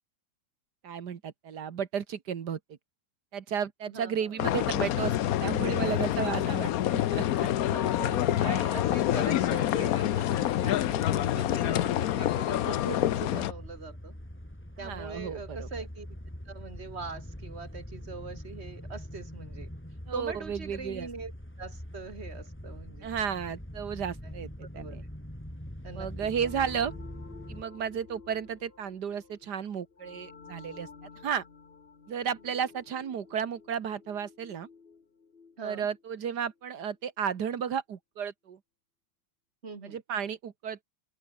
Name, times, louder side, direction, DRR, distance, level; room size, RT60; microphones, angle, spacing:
voice 1, 0.8-2.6 3.3-7.5 14.8-15.7 20.1-21.1 23.0-24.5 24.7-25.0 26.0-26.9 27.5-30.9 31.2-31.4 32.1-34.7 35.6-38.6 39.8-40.8, right 7 dB, 65° right, 1.9 m, -33 dB
voice 2, 3.9-4.4 7.6-14.1 14.8-16.1 16.5-19.7 20.1-21.3 21.6-23.2 24.2-24.4 24.7-25.0 25.8-26.1 35.6-35.9 39.6-40.0, right 4 dB, 35° right, 2.2 m, -41 dB
sound 1, 4.4-13.5, left 12 dB, 65° left, 1.0 m, -27 dB
sound 2, 13.1-27.6, equal, 5° left, 4.5 m, -43 dB
sound 3, 26.3-36.7, left 5 dB, 35° left, 1.6 m, -52 dB
open air
omnidirectional pair, 1.9 m